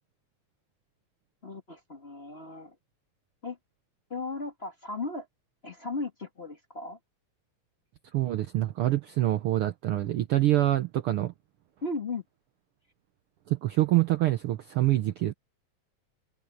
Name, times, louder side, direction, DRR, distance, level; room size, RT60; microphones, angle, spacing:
voice 1, 1.4-2.7 3.4-3.6 4.1-5.3 5.6-7.0 11.8-12.2, left 3 dB, 25° left, 1.5 m, -36 dB
voice 2, 8.1-11.3 13.5-15.3, right 15 dB, 70° right, 1.4 m, -26 dB
open air
omnidirectional pair, 3.3 m